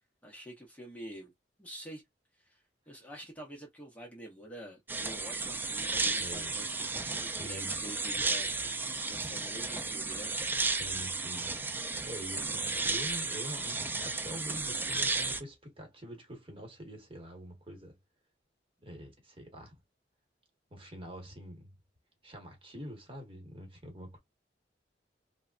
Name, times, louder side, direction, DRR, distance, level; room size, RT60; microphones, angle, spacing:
voice 1, 0.2-1.3 1.6-2.0 2.4-10.4, equal, 10° left, 0.7 m, -47 dB
sound 1, 4.9-15.4, right 3 dB, 10° right, 0.3 m, -33 dB
voice 2, 6.2-6.5 7.3-7.8 10.7-18.0 18.8-19.8 20.7-21.7 22.2-24.2, equal, 30° right, 1.2 m, -46 dB
3.3 x 2.1 x 2.4 m
head